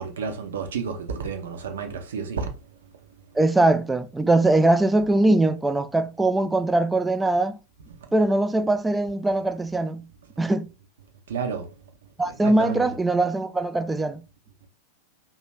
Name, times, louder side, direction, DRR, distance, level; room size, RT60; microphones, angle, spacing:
voice 1, 0.0-2.5 11.3-11.7 12.4-12.9, right 5 dB, 60° right, 0.7 m, -30 dB
voice 2, 3.3-7.6 8.1-10.0 10.4-10.7 12.2-14.2, right 2 dB, 10° right, 0.3 m, -21 dB
2.9 x 2.4 x 4.3 m
figure-of-eight pair, 90°, 0 cm